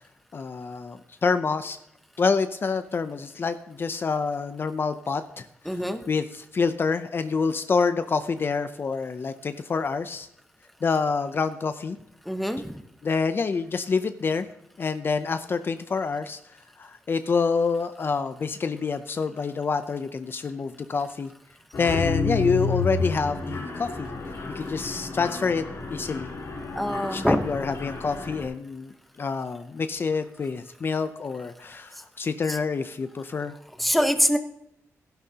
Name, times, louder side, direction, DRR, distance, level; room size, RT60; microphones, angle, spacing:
voice 1, 0.3-1.8 2.2-5.4 6.1-10.3 10.8-12.0 13.0-14.5 14.8-16.4 16.8-21.3 21.8-24.1 24.6-25.6 25.9-26.3 27.1-28.9 29.2-33.5, left 5 dB, 40° left, 10 dB, 0.5 m, -27 dB
voice 2, 5.7-6.0 12.3-12.7 26.8-27.4 32.5-32.6 33.8-34.4, equal, ahead, 7 dB, 0.9 m, -24 dB
Mechanisms, 21.7-28.4, left 4 dB, 60° left, 4.0 m, -31 dB
15.0 x 11.5 x 2.9 m, 0.77 s
wide cardioid pair, 120°, 6 cm